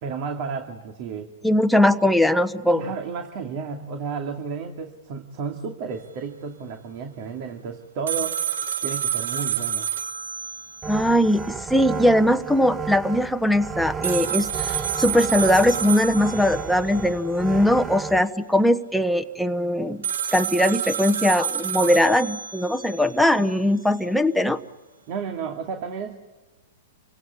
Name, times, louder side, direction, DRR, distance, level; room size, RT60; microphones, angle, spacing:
voice 1, 0.0-1.3 2.7-8.4 8.8-9.9 25.1-26.2, right 5 dB, 45° right, 5 dB, 2.5 m, -32 dB
voice 2, 1.4-2.8 10.9-20.0 20.3-24.6, left 1 dB, ahead, 7 dB, 1.2 m, -20 dB
sound 1, 8.1-11.1 11.4-11.5 14.0-17.1 20.0-23.1, right 9 dB, 80° right, 1.7 m, -29 dB
sound 2, 10.8-18.2, right 5 dB, 15° right, 0.8 m, -33 dB
28.5 x 17.5 x 9.9 m, 1.2 s
hypercardioid pair, 135°, 0 cm